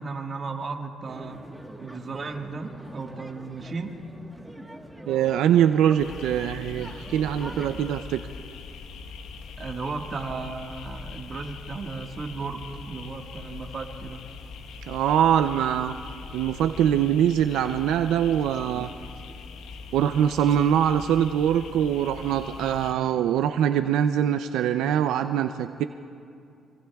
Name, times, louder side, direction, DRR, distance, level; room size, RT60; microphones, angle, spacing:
voice 1, 0.0-1.4 1.8-3.9 9.6-12.6 12.9-14.2 22.6-22.8, right 4 dB, 40° right, 3 dB, 1.6 m, -35 dB
sound 1, 1.1-8.0, right 1 dB, 5° right, 1.3 m, -43 dB
voice 2, 5.1-8.2 14.9-15.9 16.3-18.9 19.9-25.8, right 10 dB, 85° right, 9 dB, 0.4 m, -23 dB
sound 2, 6.0-22.9, left 5 dB, 80° left, 1.1 m, -41 dB
25.5 x 24.0 x 2.3 m, 2.6 s
cardioid pair, 90°, 0 cm